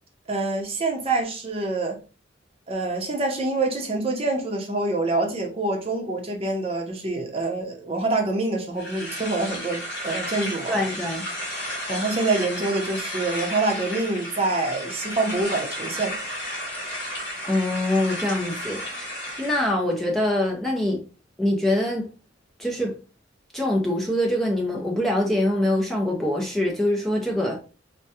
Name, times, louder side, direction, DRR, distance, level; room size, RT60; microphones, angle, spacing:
voice 1, 0.3-2.0 2.7-10.8 11.9-16.1, right 2 dB, 30° right, 0.8 m, -26 dB
sound 1, 8.8-19.7, equal, 55° left, 1.4 m, -33 dB
voice 2, 10.7-11.2 17.4-21.0 21.4-22.1 22.6-22.9 23.5-27.6, left 1 dB, ahead, 0.6 m, -24 dB
4.6 x 2.2 x 2.7 m
head